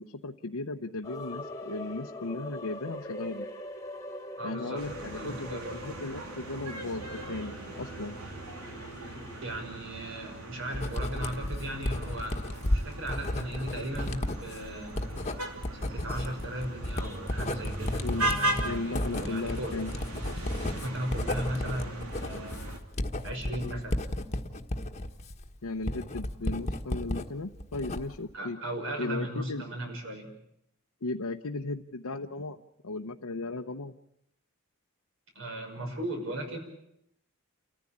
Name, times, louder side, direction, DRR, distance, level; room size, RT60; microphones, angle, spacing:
voice 1, 0.0-3.5 4.4-8.2 18.0-18.3 18.6-19.9 25.6-28.6 29.0-29.6 31.0-33.9, left 2 dB, 85° left, 3 dB, 0.9 m, -36 dB
sound 1, 1.0-9.6, left 1 dB, 15° left, 1.8 m, -43 dB
voice 2, 4.4-4.8 5.1-5.8 9.4-12.4 12.7-15.0 15.7-19.8 20.7-22.6 23.2-24.0 28.3-30.3 35.3-36.6, right 1 dB, 60° right, 4 dB, 5.9 m, -37 dB
sound 2, 4.8-22.8, right 1 dB, 90° right, 2.9 m, -38 dB
Writing, 10.7-27.3 27.6-28.3, left 1 dB, 30° left, 1.3 m, -33 dB
29.0 x 14.5 x 8.7 m, 0.78 s
head